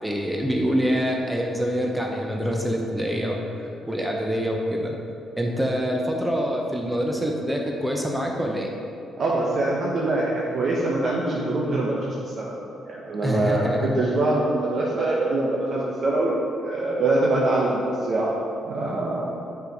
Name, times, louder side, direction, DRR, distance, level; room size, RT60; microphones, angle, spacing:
voice 1, 0.0-4.9 5.4-8.7 13.2-13.9, equal, 5° right, 0 dB, 0.8 m, -25 dB
voice 2, 9.2-12.6 12.9-13.7 14.0-16.3 16.6-18.3 18.6-19.3, right 2 dB, 55° right, -5 dB, 1.0 m, -24 dB
6.5 x 4.9 x 5.3 m, 2.6 s
cardioid pair, 90°, 0 cm